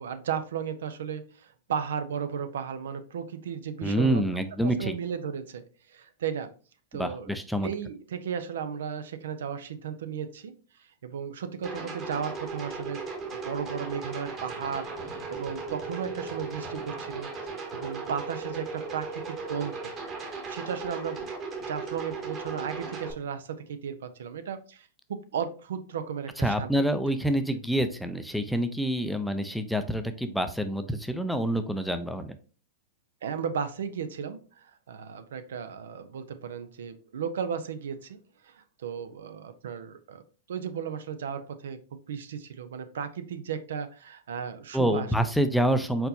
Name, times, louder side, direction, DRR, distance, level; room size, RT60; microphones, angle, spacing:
voice 1, 0.0-4.2 4.6-5.6 5.9-6.5 6.9-7.3 7.6-10.5 11.0-13.0 13.4-17.3 17.7-19.9 20.5-21.3 21.7-26.7 33.2-38.2 38.4-40.2 40.5-45.1, right 7 dB, 75° right, 10 dB, 0.5 m, -35 dB
voice 2, 3.8-4.9 6.9-7.7 26.4-32.4 44.7-46.1, right 1 dB, ahead, 8 dB, 0.5 m, -27 dB
sound 1, 11.6-23.1, right 4 dB, 30° right, 1.2 m, -37 dB
4.4 x 4.1 x 2.7 m, 0.38 s
hypercardioid pair, 120°, 0 cm